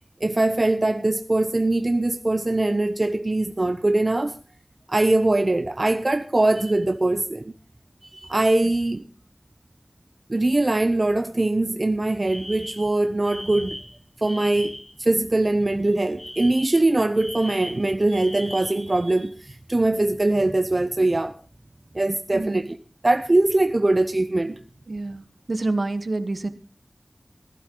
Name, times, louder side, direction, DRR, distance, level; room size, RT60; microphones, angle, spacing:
voice 1, 0.2-4.4 4.9-7.5 8.1-9.0 10.3-13.8 14.2-14.7 15.0-21.3 21.9-22.8 23.0-24.6, right 2 dB, 50° right, 0.7 m, -22 dB
voice 2, 8.6-9.0 22.3-22.7 24.9-26.5, right 2 dB, 70° right, 1.1 m, -28 dB
Alarm, 12.2-15.0 16.2-18.9, equal, 30° left, 1.8 m, -39 dB
16.0 x 11.5 x 3.8 m
wide cardioid pair, 50°, 0 cm